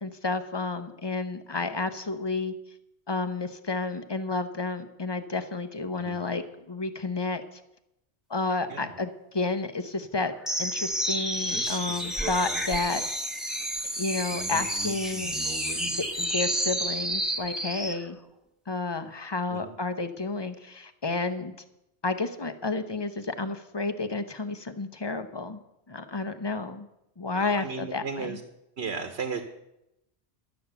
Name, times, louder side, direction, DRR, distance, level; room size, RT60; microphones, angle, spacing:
voice 1, 0.0-2.5 3.1-7.4 8.3-10.3 10.6-13.0 14.0-15.4 15.7-18.2 18.7-21.5 22.0-25.6 25.9-26.9 27.2-28.4, left 3 dB, 25° left, 10 dB, 0.8 m, -31 dB
sound 1, 10.4-18.0, right 1 dB, ahead, 1.0 m, -30 dB
voice 2, 27.3-28.4 28.8-29.4, right 5 dB, 85° right, 6 dB, 1.3 m, -35 dB
11.5 x 7.0 x 8.0 m, 0.86 s
omnidirectional pair, 1.1 m